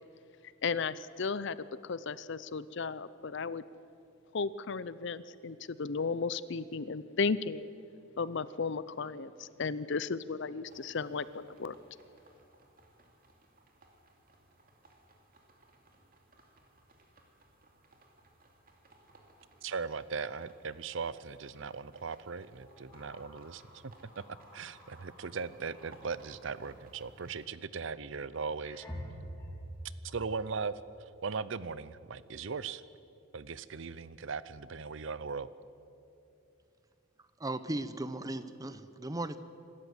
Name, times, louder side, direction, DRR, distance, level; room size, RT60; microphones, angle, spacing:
voice 1, 0.6-3.6 4.3-7.7 8.2-11.8, left 4 dB, 55° left, 17 dB, 0.6 m, -35 dB
sound 1, 10.7-27.5, right 2 dB, 40° right, 2.5 m, -62 dB
sound 2, 19.1-19.2 19.5-19.7 21.5-21.7 22.6-26.9 28.1-28.2 28.6-29.7, equal, 15° left, 3.9 m, -49 dB
voice 2, 19.6-23.9 24.5-28.9 30.0-30.7 31.2-32.8 33.3-35.5, right 5 dB, 60° right, 17 dB, 0.6 m, -38 dB
voice 3, 37.4-39.4, right 1 dB, 15° right, 12 dB, 0.7 m, -37 dB
26.5 x 13.5 x 8.0 m, 2.7 s
head